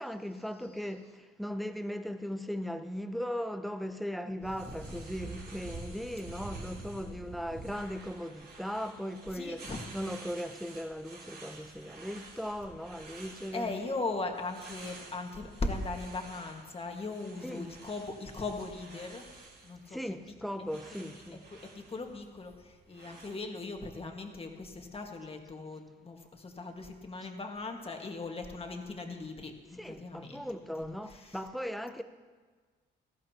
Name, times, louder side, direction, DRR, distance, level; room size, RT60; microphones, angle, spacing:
voice 1, 0.0-13.9 14.7-14.8 17.4-17.7 19.9-21.4 29.8-32.0, equal, ahead, 0.7 m, -38 dB
voice 2, 4.6-5.0 9.3-9.9 13.5-19.2 19.6-20.0 21.3-30.4 30.8-31.4, left 3 dB, 30° left, 1.7 m, -39 dB
sound 1, 4.6-23.3, right 3 dB, 55° right, 3.8 m, -49 dB
18.0 x 14.0 x 2.9 m
cardioid pair, 90°, 20 cm